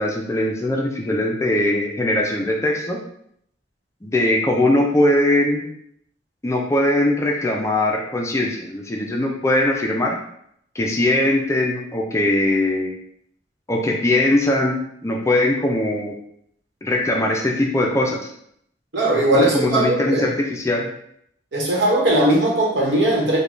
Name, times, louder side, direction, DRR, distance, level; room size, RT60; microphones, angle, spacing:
voice 1, 0.0-3.0 4.0-5.6 6.4-10.2 10.8-12.9 13.7-16.1 16.8-18.3 19.3-20.9, left 1 dB, 15° left, 0 dB, 0.4 m, -20 dB
voice 2, 18.9-20.3 21.5-23.4, right 1 dB, 70° right, -3 dB, 1.0 m, -19 dB
3.1 x 2.2 x 3.7 m, 0.71 s
head